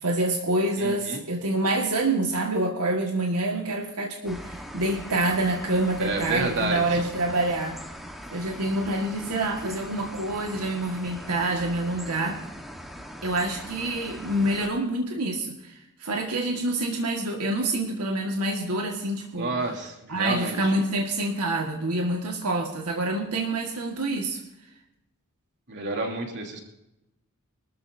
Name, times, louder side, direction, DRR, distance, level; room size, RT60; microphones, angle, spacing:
voice 1, 0.0-7.8 8.3-12.4 13.2-19.5 20.1-24.4, right 2 dB, 90° right, 1 dB, 1.8 m, -27 dB
voice 2, 0.8-1.2 6.0-7.0 19.4-20.7 25.7-26.6, right 3 dB, 50° right, 1 dB, 3.1 m, -29 dB
sound 1, 4.3-14.7, equal, ahead, 1.4 m, -41 dB
24.5 x 13.5 x 2.7 m, 0.90 s
head